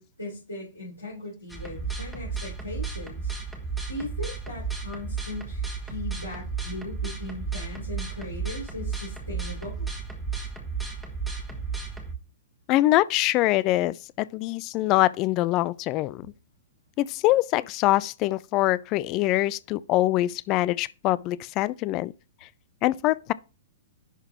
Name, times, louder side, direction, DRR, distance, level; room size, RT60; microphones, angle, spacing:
voice 1, 0.0-3.3 3.9-9.8, left 2 dB, 85° left, 3.6 m, -38 dB
sound 1, 1.5-12.1, right 5 dB, ahead, 1.4 m, -33 dB
voice 2, 12.7-13.9 14.3-16.3 17.0-22.1 22.8-23.3, left 16 dB, 30° left, 0.3 m, -24 dB
11.0 x 3.8 x 3.0 m
figure-of-eight pair, 105°, 0 cm